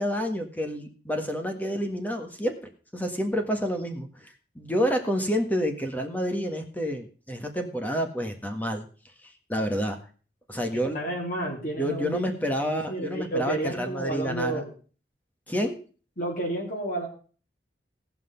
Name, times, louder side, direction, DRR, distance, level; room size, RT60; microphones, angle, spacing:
voice 1, 0.0-2.6 2.9-8.9 9.2-10.0 10.5-11.0 11.8-14.6 15.5-15.8, equal, 10° left, 5 dB, 1.6 m, -29 dB
voice 2, 10.7-14.7 16.2-17.1, right 1 dB, 50° left, -2 dB, 3.5 m, -31 dB
17.5 x 6.0 x 5.7 m, 0.40 s
head